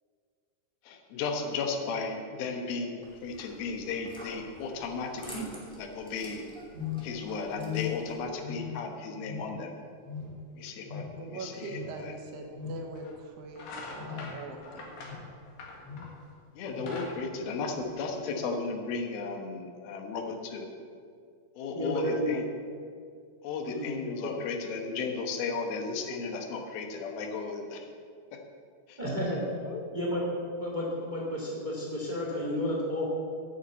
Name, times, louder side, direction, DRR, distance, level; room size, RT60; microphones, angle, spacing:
voice 1, 0.8-6.4 7.0-9.7 10.5-12.1 16.5-20.7 21.6-22.5 23.4-27.9 28.9-29.0 29.6-29.8, left 4 dB, 85° left, 3 dB, 3.0 m, -35 dB
sound 1, 3.0-8.2, right 2 dB, ahead, 1.5 m, -46 dB
sound 2, 6.7-7.2 7.5-8.1 8.4-8.9 9.2-9.7 10.0-10.5 10.8-11.3 11.7-12.0 12.5-12.9 13.9-14.4 15.0-15.3 15.8-16.1 16.7-17.0, left 8 dB, 45° right, 2.7 m, -39 dB
voice 2, 11.2-14.9, right 3 dB, 75° right, 2 dB, 2.8 m, -42 dB
sound 3, 12.2-12.3 13.0-13.2 13.5-16.2 16.6-18.3, left 2 dB, 65° left, 3.0 m, -44 dB
voice 3, 21.7-22.3 23.7-23.9 29.0-29.4 29.9-30.2 30.6-33.0, equal, 25° right, -4 dB, 0.9 m, -31 dB
9.4 x 7.0 x 8.3 m, 2.2 s
omnidirectional pair, 4.2 m